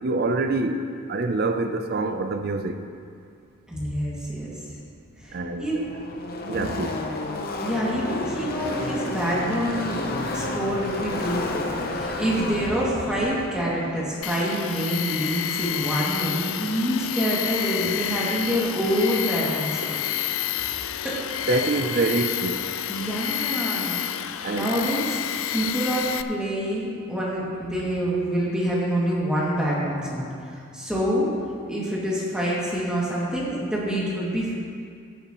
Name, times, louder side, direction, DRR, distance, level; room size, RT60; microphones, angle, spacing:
voice 1, 0.0-0.8 1.1-2.8 5.3-5.7 6.5-6.9 17.8-17.9 21.5-22.6 24.4-24.7, right 3 dB, 45° right, 7 dB, 0.5 m, -25 dB
voice 2, 3.7-4.5 5.2-5.3 5.6-5.8 6.4-6.8 7.6-10.0 10.3-19.8 20.5-20.8 21.0-21.1 22.9-25.2 25.5-31.3 31.7-34.5, equal, 5° right, -7 dB, 2.3 m, -26 dB
Car passing by / Race car auto racing, 4.6-4.7 4.9-15.5, left 2 dB, 45° left, 0.8 m, -32 dB
Tools, 14.2-26.2, left 11 dB, 80° left, 0.4 m, -29 dB
16.0 x 8.8 x 3.1 m, 2.3 s
head